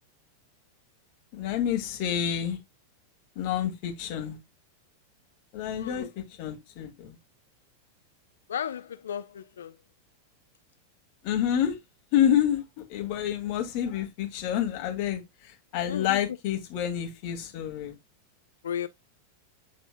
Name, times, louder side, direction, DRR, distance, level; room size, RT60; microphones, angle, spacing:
voice 1, 1.3-2.6 3.4-4.4 5.5-7.2 11.2-11.8 12.1-18.0, left 10 dB, 45° left, 2.3 m, -28 dB
voice 2, 8.5-9.2 9.6-9.7 15.9-16.0 18.6-18.9, left 8 dB, 65° left, 0.6 m, -33 dB
10.5 x 4.4 x 2.2 m
figure-of-eight pair, 90°, 0 cm